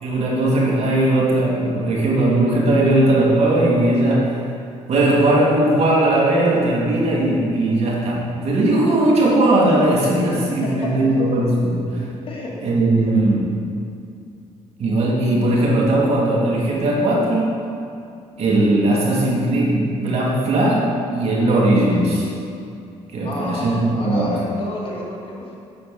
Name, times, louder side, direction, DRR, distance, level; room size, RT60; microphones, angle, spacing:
voice 1, 0.0-4.3 4.9-12.1 12.6-13.5 14.8-17.5 18.4-22.2 23.1-24.3, right 1 dB, 55° right, -4 dB, 2.0 m, -18 dB
voice 2, 10.6-11.2 12.2-12.6 13.0-13.1 21.9-22.0 23.2-25.6, left 1 dB, 45° left, -3 dB, 1.5 m, -31 dB
8.7 x 4.3 x 5.2 m, 2.4 s
cardioid pair, 90°, 12 cm